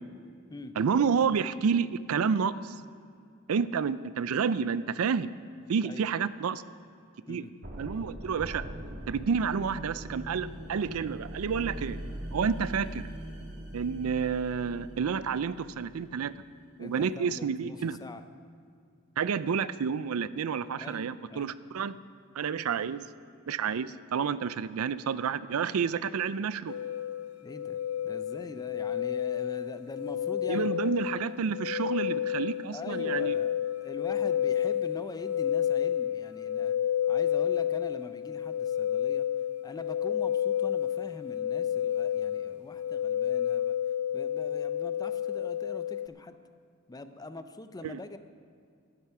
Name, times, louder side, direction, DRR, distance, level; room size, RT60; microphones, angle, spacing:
voice 1, 0.8-2.7 3.5-5.3 5.7-6.6 7.3-7.4 7.8-8.7 9.1-12.0 12.3-13.0 13.7-16.3 16.8-18.0 19.2-22.0 22.4-23.0 23.5-26.7 30.5-33.4 47.8-48.0, right 6 dB, 80° right, 16 dB, 0.4 m, -29 dB
sound 1, 7.6-16.5, right 1 dB, 50° right, 2.0 m, -41 dB
voice 2, 16.8-18.2 20.7-21.5 22.7-22.8 27.4-27.8 28.0-30.7 32.7-33.5 33.8-36.7 37.1-39.3 39.6-43.8 44.1-46.3 46.9-48.2, left 2 dB, 20° left, 10 dB, 0.5 m, -43 dB
sound 2, 26.7-46.1, left 10 dB, 90° left, 0.5 m, -30 dB
12.5 x 10.5 x 5.6 m, 2.3 s
head